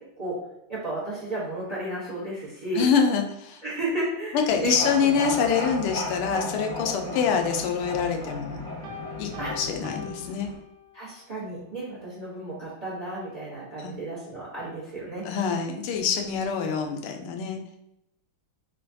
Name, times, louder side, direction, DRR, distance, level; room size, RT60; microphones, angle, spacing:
voice 1, 0.7-2.9 3.6-4.7 7.0-7.2 9.4-9.5 10.9-15.3, right 2 dB, 55° right, -7 dB, 0.4 m, -33 dB
voice 2, 2.7-3.6 4.3-8.6 9.2-10.5 13.8-13.9 15.2-17.6, left 6 dB, 90° left, 4 dB, 1.5 m, -25 dB
sound 1, 4.5-10.6, left 2 dB, 55° left, 1.7 m, -35 dB
Piano, 8.8-11.2, left 4 dB, 85° right, 1.6 m, -42 dB
5.3 x 2.2 x 2.7 m, 0.81 s
omnidirectional pair, 2.4 m